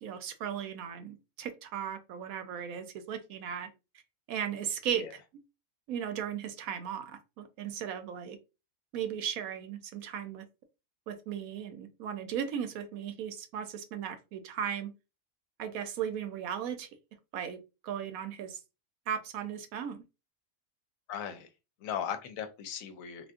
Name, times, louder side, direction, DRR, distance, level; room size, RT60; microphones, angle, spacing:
voice 1, 0.0-3.7 4.3-5.1 5.9-8.4 8.9-10.4 11.1-14.9 15.6-16.9 17.3-18.6 19.1-20.0, right 8 dB, 90° right, 1.1 m, -36 dB
voice 2, 21.1-21.5 21.8-23.3, left 8 dB, 75° left, 1.0 m, -37 dB
3.4 x 2.4 x 2.5 m
omnidirectional pair, 1.4 m